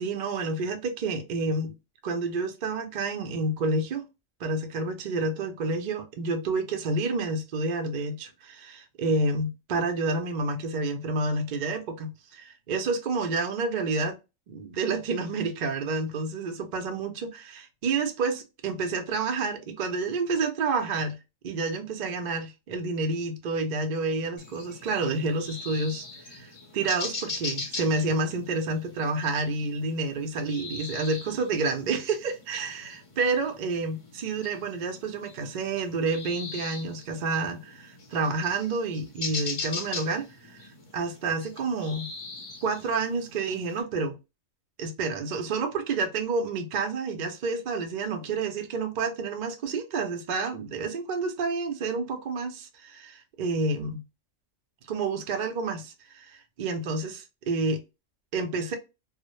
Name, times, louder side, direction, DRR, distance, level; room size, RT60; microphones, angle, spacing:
voice 1, 0.0-1.8 2.0-4.0 4.4-14.2 14.5-21.2 21.4-26.1 26.3-26.5 26.7-40.3 40.9-42.1 42.6-44.1 44.8-54.0 54.9-57.8 58.3-58.7, right 3 dB, 70° right, 0.4 m, -29 dB
sound 1, 24.4-43.8, left 3 dB, 45° left, 0.4 m, -41 dB
2.0 x 2.0 x 2.9 m
omnidirectional pair, 1.3 m